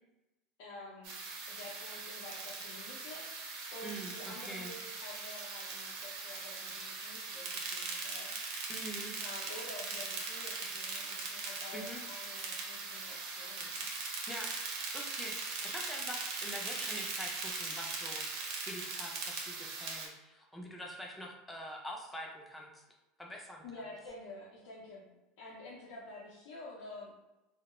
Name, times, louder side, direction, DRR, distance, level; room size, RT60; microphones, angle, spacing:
voice 1, 0.6-1.2 1.5-8.3 9.2-13.8 16.4-16.7 23.6-25.1 25.4-27.1, left 2 dB, 70° left, -6 dB, 0.5 m, -49 dB
sound 1, 1.0-20.1, right 3 dB, 60° right, 0.6 m, -40 dB
voice 2, 3.8-4.7 8.7-9.2 11.7-12.0 14.3-14.5 14.9-18.3 18.6-22.8 23.2-23.7, equal, 5° left, 0 dB, 0.4 m, -45 dB
2.2 x 2.0 x 2.9 m, 1.0 s
supercardioid pair, 150°, 0 cm